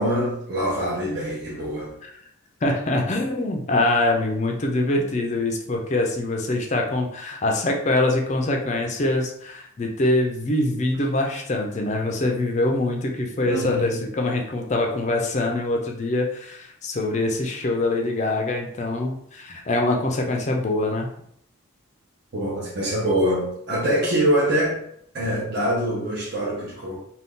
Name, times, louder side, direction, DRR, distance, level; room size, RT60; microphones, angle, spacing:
voice 1, 0.0-1.9 13.4-14.1 22.3-24.8 25.1-27.0, equal, 50° right, -6 dB, 0.7 m, -24 dB
voice 2, 2.6-21.1, left 2 dB, 35° left, 2 dB, 0.4 m, -24 dB
2.6 x 2.3 x 3.5 m, 0.70 s
head